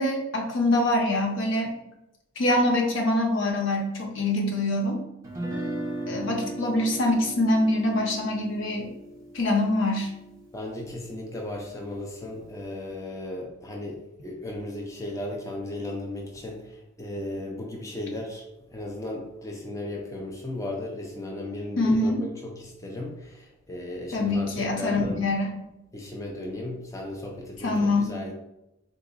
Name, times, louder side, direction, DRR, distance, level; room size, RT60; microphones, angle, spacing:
voice 1, 0.0-1.8 2.4-5.0 6.1-8.9 9.3-10.1 21.8-22.2 24.1-25.5 27.6-28.1, left 1 dB, 75° left, 1 dB, 0.7 m, -24 dB
Guitar, 5.2-11.4, right 1 dB, 15° right, 0.9 m, -37 dB
voice 2, 6.1-6.4 10.5-25.2 25.9-28.3, left 1 dB, 15° left, 0 dB, 0.5 m, -36 dB
3.8 x 2.8 x 2.5 m, 0.88 s
head